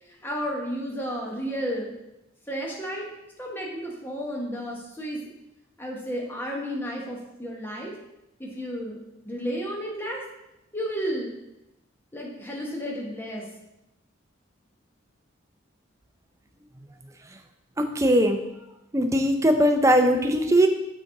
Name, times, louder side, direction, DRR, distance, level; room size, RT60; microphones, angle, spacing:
voice 1, 0.1-1.9 2.5-3.1 3.4-5.2 5.8-7.9 8.4-10.2 10.7-11.3 12.1-13.5, equal, 10° left, -2 dB, 1.1 m, -32 dB
voice 2, 17.8-18.4 18.9-20.7, equal, 15° right, 5 dB, 0.5 m, -20 dB
6.1 x 5.4 x 3.8 m, 0.90 s
head